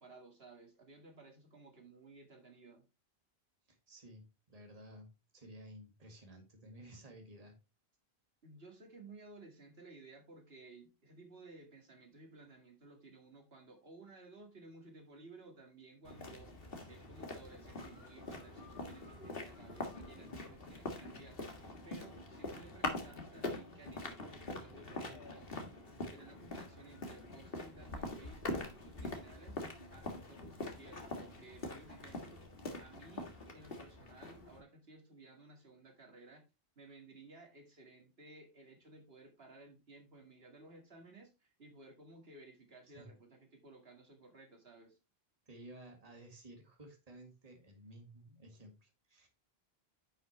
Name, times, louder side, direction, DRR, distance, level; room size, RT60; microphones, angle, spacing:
voice 1, 0.0-2.9 8.4-21.5 21.9-25.8 26.1-29.6 29.9-32.5 32.8-36.5 36.8-45.0, right 3 dB, 75° right, 3 dB, 2.2 m, -57 dB
voice 2, 3.7-5.1 5.3-7.5 42.9-43.1 45.5-49.3, right 1 dB, 35° right, 2 dB, 2.0 m, -54 dB
sound 1, 16.0-34.6, left 2 dB, 65° left, 1.9 m, -44 dB
10.0 x 5.6 x 3.2 m, 0.27 s
omnidirectional pair, 1.0 m